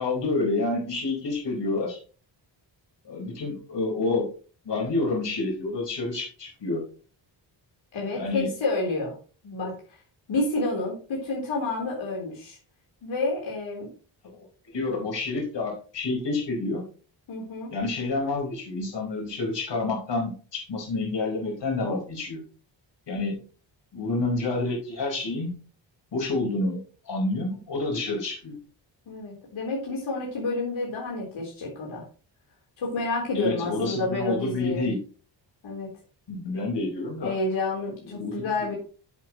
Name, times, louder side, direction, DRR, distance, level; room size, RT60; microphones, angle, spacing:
voice 1, 0.0-2.0 3.0-4.3 4.6-6.8 8.1-8.5 9.6-9.7 14.2-14.4 14.7-16.8 17.7-22.4 23.1-23.4 23.9-25.5 26.1-26.8 27.1-28.5 33.3-35.0 36.3-37.3 38.1-38.8, left 3 dB, 65° left, 0 dB, 4.6 m, -28 dB
voice 2, 7.9-9.2 9.4-9.7 10.3-12.6 13.0-13.9 17.3-17.7 29.1-32.1 32.8-34.9 35.6-35.9 37.2-38.7, left 2 dB, 85° left, -3 dB, 3.8 m, -29 dB
11.0 x 7.7 x 3.0 m, 0.38 s
wide cardioid pair, 125°, 45 cm